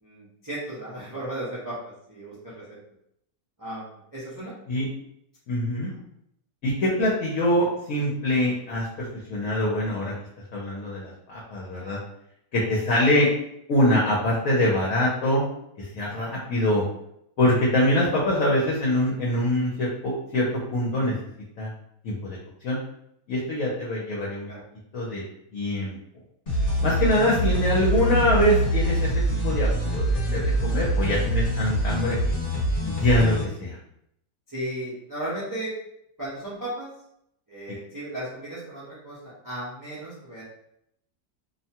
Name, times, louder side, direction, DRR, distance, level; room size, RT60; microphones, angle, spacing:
voice 1, 0.0-1.8 2.1-2.6 3.6-4.5 5.9-6.0 11.7-12.0 16.1-16.4 24.5-24.6 34.5-35.7 36.2-36.9 37.5-40.4, right 1 dB, 20° right, -9 dB, 0.5 m, -35 dB
voice 2, 5.5-5.9 6.6-10.1 10.5-12.0 12.5-13.3 13.7-15.4 15.8-16.8 17.4-21.1 21.6-21.7 22.0-22.4 22.6-22.8 23.3-24.5 24.9-25.2 25.5-26.0 26.8-32.2 32.9-33.7, left 1 dB, 65° left, -4 dB, 1.0 m, -24 dB
sound 1, 26.5-33.4, right 1 dB, 35° left, 1.4 m, -24 dB
2.7 x 2.2 x 2.8 m, 0.75 s
omnidirectional pair, 1.7 m